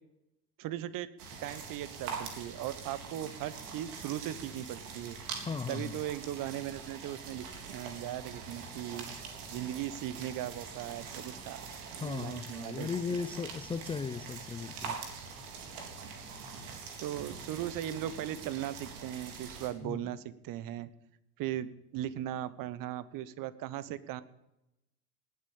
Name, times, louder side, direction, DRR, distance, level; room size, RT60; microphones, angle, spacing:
voice 1, 0.6-1.1 1.4-5.2 5.7-9.1 9.5-11.6 11.9-12.9 17.0-20.9 21.4-24.2, right 12 dB, 45° right, 16 dB, 1.2 m, -38 dB
sound 1, 1.2-19.7, right 5 dB, 65° right, 3.9 m, -44 dB
voice 2, 5.4-6.0 12.0-15.0 19.8-20.0, left 5 dB, 10° left, 13 dB, 0.5 m, -37 dB
19.0 x 8.5 x 7.2 m, 0.88 s
hypercardioid pair, 80°, 47 cm